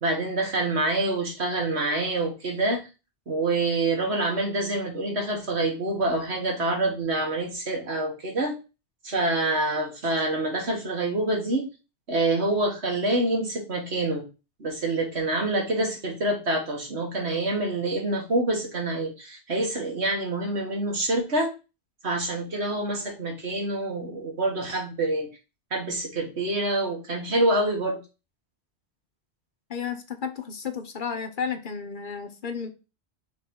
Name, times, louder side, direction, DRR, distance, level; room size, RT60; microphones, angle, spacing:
voice 1, 0.0-2.9 3.3-8.6 9.0-11.7 12.1-14.3 14.6-21.5 22.0-25.3 25.7-28.0, right 2 dB, 80° right, 1 dB, 2.0 m, -26 dB
voice 2, 29.7-32.7, left 6 dB, 55° left, 8 dB, 0.8 m, -32 dB
5.9 x 3.0 x 5.3 m, 0.30 s
omnidirectional pair, 1.1 m